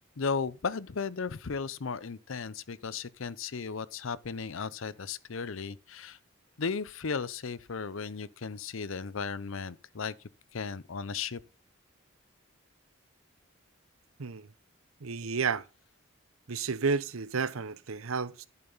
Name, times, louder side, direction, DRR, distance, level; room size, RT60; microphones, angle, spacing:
voice 1, 0.2-6.2 6.6-10.1 10.5-11.4, left 5 dB, 75° left, 0.7 m, -35 dB
voice 2, 14.2-14.5 15.0-15.6 16.5-18.5, right 5 dB, 85° right, 0.8 m, -31 dB
11.0 x 8.7 x 4.0 m
head